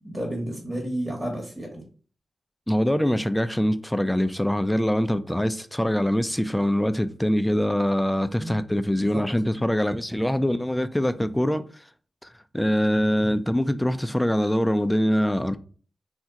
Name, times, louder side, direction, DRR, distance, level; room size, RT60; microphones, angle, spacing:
voice 1, 0.0-1.8 8.4-8.6 8.9-9.2, right 1 dB, 15° right, 1.0 m, -32 dB
voice 2, 2.7-11.6 12.5-15.6, equal, 10° left, 0.4 m, -23 dB
2.8 x 2.1 x 3.6 m
supercardioid pair, 40°, 0 cm